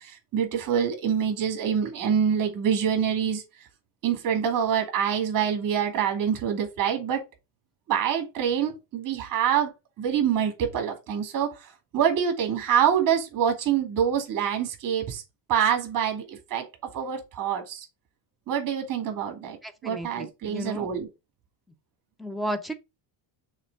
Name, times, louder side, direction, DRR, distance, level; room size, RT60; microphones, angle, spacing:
voice 1, 0.0-3.4 4.0-7.2 7.9-9.7 10.0-15.2 15.5-17.9 18.5-19.6 19.8-21.1, right 8 dB, 40° right, 2.3 m, -26 dB
voice 2, 19.6-20.9 22.2-22.7, equal, ahead, 0.4 m, -33 dB
6.4 x 3.3 x 5.3 m
cardioid pair, 160°, 49 cm